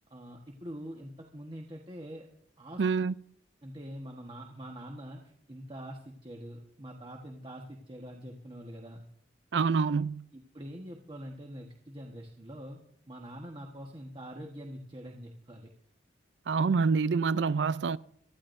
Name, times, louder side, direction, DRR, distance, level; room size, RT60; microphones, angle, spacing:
voice 1, 0.1-2.3 2.6-2.8 3.6-9.0 10.3-12.8 13.1-15.7, equal, 30° right, 1.4 m, -44 dB
voice 2, 2.8-3.1 9.5-10.3 16.5-18.0, right 5 dB, 85° right, 0.4 m, -26 dB
24.5 x 14.0 x 2.6 m
head